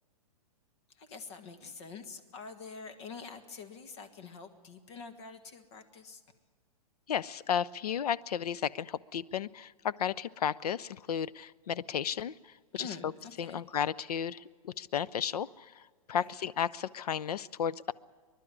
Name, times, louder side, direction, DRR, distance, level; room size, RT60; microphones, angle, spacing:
voice 1, 1.0-6.2 12.7-13.6 16.1-16.3, left 5 dB, 45° left, 8 dB, 1.6 m, -46 dB
voice 2, 7.1-12.3 12.7-13.1 13.4-15.8 16.1-17.9, left 8 dB, 90° left, 18 dB, 0.6 m, -33 dB
25.5 x 11.5 x 9.9 m, 1.6 s
hypercardioid pair, 155°, 19 cm